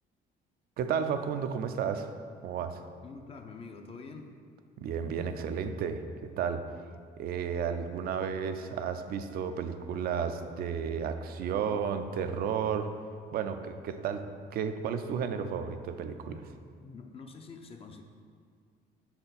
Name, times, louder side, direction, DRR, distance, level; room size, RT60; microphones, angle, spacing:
voice 1, 0.8-2.1 2.4-2.8 4.8-6.0 6.4-6.6 7.2-12.9 13.3-14.2 14.5-16.5, right 7 dB, 65° right, 8 dB, 0.4 m, -32 dB
voice 2, 3.0-4.4 16.8-18.0, left 4 dB, 35° left, 4 dB, 0.5 m, -46 dB
5.5 x 4.4 x 4.0 m, 2.2 s
cardioid pair, 110°, 17 cm